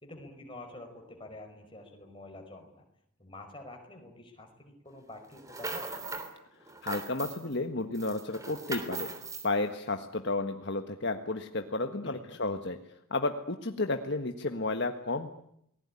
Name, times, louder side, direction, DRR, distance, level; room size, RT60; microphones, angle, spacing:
voice 1, 0.0-2.9 3.2-5.9 12.0-12.4, left 2 dB, 25° left, 3 dB, 5.3 m, -48 dB
sound 1, 5.3-6.3 6.7-7.6 7.9-9.5, right 3 dB, 15° right, 3.3 m, -39 dB
voice 2, 6.8-9.1 9.4-12.8 13.1-15.3, left 2 dB, 55° left, 6 dB, 1.6 m, -32 dB
28.5 x 20.0 x 9.9 m, 0.75 s
head